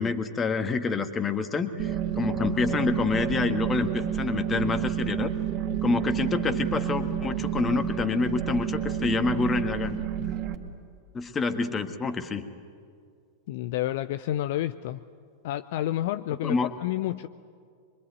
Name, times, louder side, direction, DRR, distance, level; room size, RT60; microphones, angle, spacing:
voice 1, 0.0-1.9 2.2-5.3 5.8-10.0 11.1-12.5 16.4-16.7, left 4 dB, 20° left, 9 dB, 1.7 m, -27 dB
sound 1, 1.8-10.5, right 9 dB, 35° right, 2.1 m, -30 dB
voice 2, 13.5-15.0 15.4-17.3, left 13 dB, 50° left, 12 dB, 0.6 m, -29 dB
24.0 x 24.0 x 9.3 m, 2.2 s
figure-of-eight pair, 90°, 0 cm